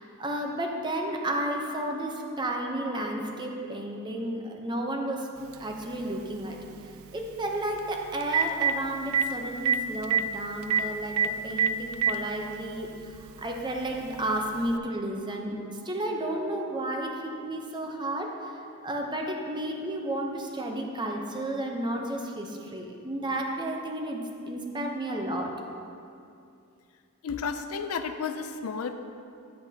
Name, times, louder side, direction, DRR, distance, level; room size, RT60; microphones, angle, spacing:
voice 1, 0.0-5.3 5.5-6.6 7.1-11.2 11.4-24.2 24.5-25.5, right 1 dB, 20° right, 1 dB, 0.7 m, -32 dB
Telephone, 5.5-5.6 7.8-7.9 8.2-8.7 9.1-9.2 9.7-9.8 10.0-10.2 10.7-10.8 11.2-11.3 11.6-12.2 13.1-13.2 14.7-14.8, right 8 dB, 65° right, 0.3 m, -23 dB
voice 2, 27.2-29.0, left 5 dB, 75° left, 8 dB, 0.5 m, -32 dB
9.8 x 8.5 x 2.8 m, 2.5 s
head